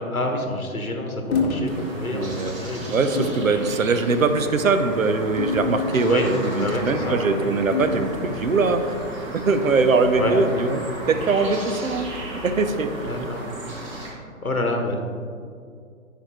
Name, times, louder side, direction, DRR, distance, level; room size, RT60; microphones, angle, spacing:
voice 1, 0.0-2.9 6.0-6.3 6.6-7.3 10.2-10.4 13.1-13.5 14.4-15.0, left 2 dB, 85° left, 3 dB, 1.1 m, -27 dB
sound 1, 1.3-1.7 2.2-2.4 3.2-3.5 4.3-4.6 5.4-6.3 7.7-8.2, left 4 dB, 25° left, 1.0 m, -27 dB
sound 2, 1.6-14.1, right 1 dB, 20° right, 1.2 m, -35 dB
voice 2, 2.1-9.0 9.3-12.1 12.4-13.1, right 3 dB, 75° right, 9 dB, 0.7 m, -22 dB
9.8 x 5.1 x 3.2 m, 2.3 s
figure-of-eight pair, 125°, 42 cm